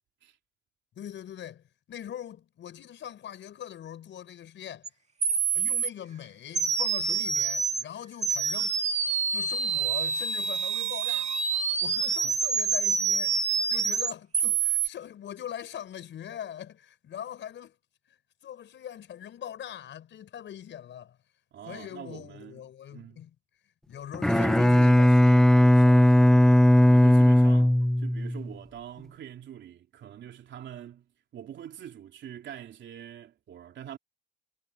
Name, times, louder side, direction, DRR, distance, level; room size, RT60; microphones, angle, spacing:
voice 1, 1.0-4.9 5.5-8.8 9.3-11.3 11.8-17.8 18.4-21.2 21.6-23.3 23.9-25.4, left 10 dB, 70° left, 5.8 m, -42 dB
sound 1, 4.8-4.9 5.2-5.9 6.6-7.8 8.2-14.9, right 5 dB, 35° right, 1.8 m, -27 dB
voice 2, 21.5-22.6 22.9-23.2 24.2-34.0, right 10 dB, 70° right, 3.2 m, -44 dB
Bowed string instrument, 24.1-28.5, left 1 dB, 5° left, 0.3 m, -18 dB
cardioid pair, 90°, 20 cm